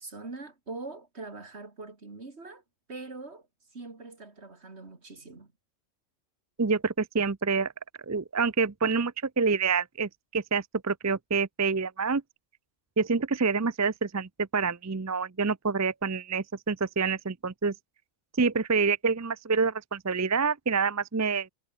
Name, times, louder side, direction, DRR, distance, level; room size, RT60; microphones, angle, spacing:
voice 1, 0.0-2.6 2.9-3.5 3.7-5.5, right 3 dB, 50° right, 3.2 m, -42 dB
voice 2, 6.6-7.7 8.1-12.2 13.0-17.7 18.4-21.5, right 4 dB, 25° right, 0.3 m, -27 dB
omnidirectional pair, 1.4 m